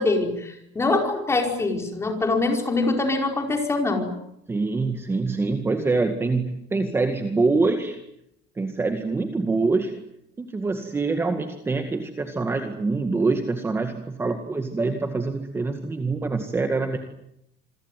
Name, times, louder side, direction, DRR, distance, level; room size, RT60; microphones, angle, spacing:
voice 1, 0.0-4.1, left 3 dB, 15° left, 3 dB, 5.1 m, -24 dB
voice 2, 4.5-8.0 8.6-10.0 10.4-17.0, right 3 dB, 10° right, 6 dB, 2.0 m, -25 dB
27.5 x 23.0 x 9.3 m, 0.80 s
cardioid pair, 170°, 19 cm